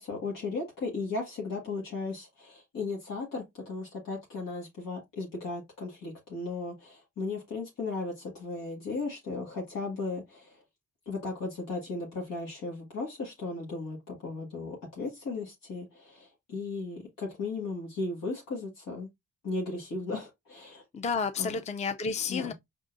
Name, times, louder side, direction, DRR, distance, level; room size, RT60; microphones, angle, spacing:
voice 1, 0.0-10.6 11.1-19.1 19.4-20.8 21.4-21.5 22.3-22.5, left 3 dB, 85° left, 2.0 m, -36 dB
voice 2, 20.9-22.5, left 5 dB, 20° left, 0.5 m, -31 dB
5.3 x 3.8 x 2.5 m
cardioid pair, 85°, 32 cm